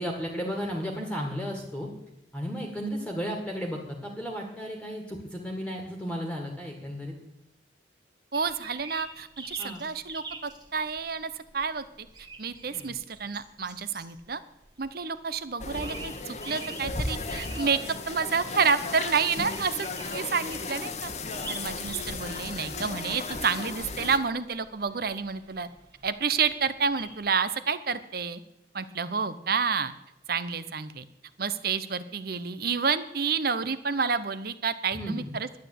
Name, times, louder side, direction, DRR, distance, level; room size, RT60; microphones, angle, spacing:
voice 1, 0.0-1.9 2.3-7.1 9.6-9.8 12.7-12.9 34.9-35.3, equal, 5° left, 1 dB, 1.9 m, -34 dB
sound 1, 8.3-27.3, right 3 dB, 25° right, 1.6 m, -46 dB
voice 2, 8.3-12.1 12.4-14.4 14.8-17.8 18.1-21.1 21.5-25.7 26.0-28.4 28.7-29.9 30.3-31.1 31.4-35.5, right 5 dB, 55° right, 13 dB, 0.9 m, -29 dB
sound 2, 15.6-24.2, left 3 dB, 35° left, 1.2 m, -35 dB
11.5 x 10.0 x 8.5 m, 0.85 s
head